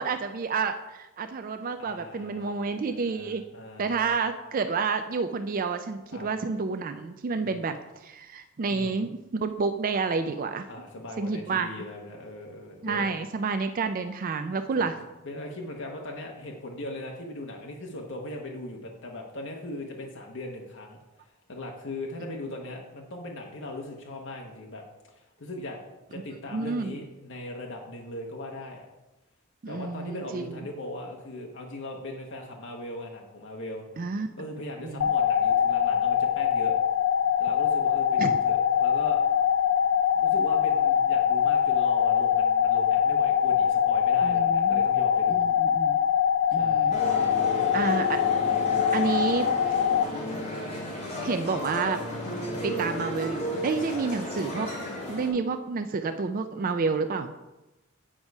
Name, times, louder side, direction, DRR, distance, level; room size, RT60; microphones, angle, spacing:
voice 1, 0.0-3.4 3.8-7.8 8.0-10.7 11.2-11.7 12.8-15.0 26.5-26.9 29.6-30.6 34.0-34.3 34.8-35.1 38.2-38.3 44.2-44.8 45.3-46.0 46.5-46.9 47.7-48.2 48.9-49.5 51.2-52.0 52.4-54.7 55.1-57.3, right 4 dB, 40° right, 8 dB, 0.4 m, -29 dB
voice 2, 1.8-4.2 6.1-6.3 7.4-7.6 8.6-8.9 10.7-13.1 14.7-15.0 15.2-21.0 21.5-25.8 26.1-28.9 29.7-33.8 34.4-36.7 37.4-39.2 40.1-45.5 46.5-46.9 47.3-48.0 50.2-50.4 53.9-54.1, left 1 dB, 60° left, 0 dB, 1.0 m, -39 dB
sound 1, 35.0-50.0, left 8 dB, 80° left, 0.4 m, -23 dB
sound 2, 46.9-55.3, equal, 30° left, 2.4 m, -33 dB
8.8 x 4.7 x 5.3 m, 1.0 s
head